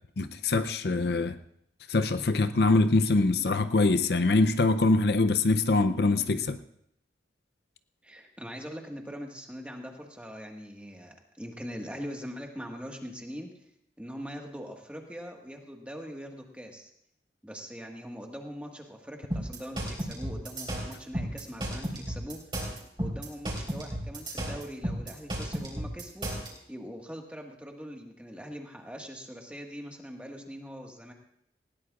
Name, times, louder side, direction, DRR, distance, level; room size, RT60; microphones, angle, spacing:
voice 1, 0.2-1.4 1.9-6.6, left 3 dB, 65° left, 10 dB, 0.6 m, -24 dB
voice 2, 8.0-13.5 14.0-16.9 17.4-22.4 23.0-26.3 26.7-31.1, equal, 5° right, 1 dB, 1.6 m, -42 dB
sound 1, 19.3-26.5, right 1 dB, 25° right, 3.9 m, -33 dB
19.5 x 17.5 x 2.4 m, 0.74 s
head